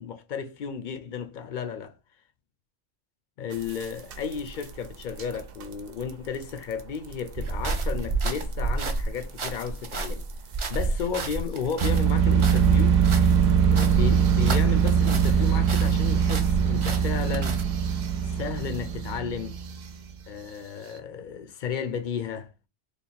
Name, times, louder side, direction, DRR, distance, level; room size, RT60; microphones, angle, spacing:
voice 1, 0.0-1.9 3.4-10.3 10.7-13.0 13.7-17.6 18.2-19.6 20.3-22.5, left 7 dB, 60° left, 0.6 m, -33 dB
sound 1, 3.5-4.6 5.0-5.2 5.6-5.8 6.1-6.2 6.4-6.5 7.1-7.2 8.0-8.1 8.5-8.6 9.9-10.0 10.6-10.7 11.8-20.1, right 7 dB, 65° right, 0.7 m, -22 dB
sound 2, 7.3-15.4 15.7-17.6, right 3 dB, 45° right, 0.4 m, -31 dB
3.3 x 2.4 x 4.2 m
omnidirectional pair, 1.1 m